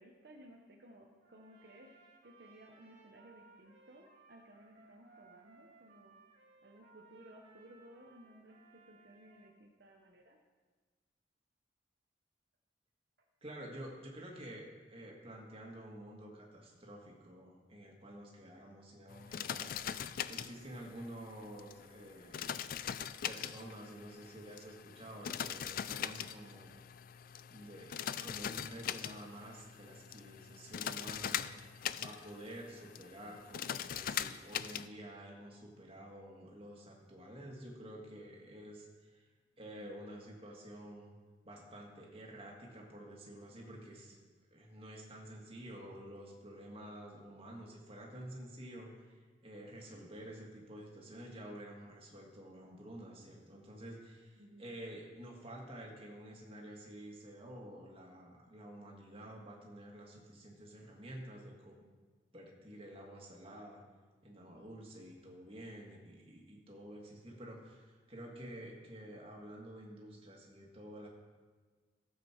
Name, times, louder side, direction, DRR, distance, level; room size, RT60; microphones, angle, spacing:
voice 1, 0.0-1.9 2.2-6.2 6.6-10.4 39.8-40.0 54.4-54.7, right 1 dB, 60° right, 1 dB, 1.0 m, -58 dB
Trumpet, 1.2-9.6, right 4 dB, 85° right, 1.9 m, -63 dB
voice 2, 13.4-22.5 23.3-26.8 27.5-31.5 31.9-39.3 39.6-41.1 41.4-44.2 44.5-49.1 49.4-61.7 62.3-63.8 64.2-71.1, right 1 dB, 35° right, -1 dB, 2.1 m, -50 dB
sound 1, 19.1-34.9, left 9 dB, 50° left, 0.4 m, -42 dB
14.5 x 7.7 x 4.5 m, 1.4 s
head